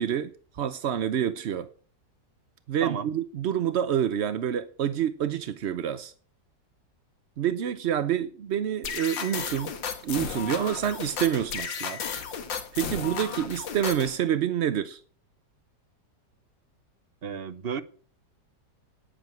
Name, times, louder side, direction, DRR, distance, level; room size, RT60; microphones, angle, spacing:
voice 1, 0.0-1.7 2.7-6.1 7.4-9.7 10.0-12.0 12.7-15.0, right 9 dB, 70° right, 0.6 m, -27 dB
sound 1, 8.8-14.2, left 7 dB, 85° left, 2.1 m, -34 dB
voice 2, 17.2-17.8, right 6 dB, 45° right, 0.9 m, -32 dB
9.6 x 8.7 x 7.6 m
omnidirectional pair, 2.0 m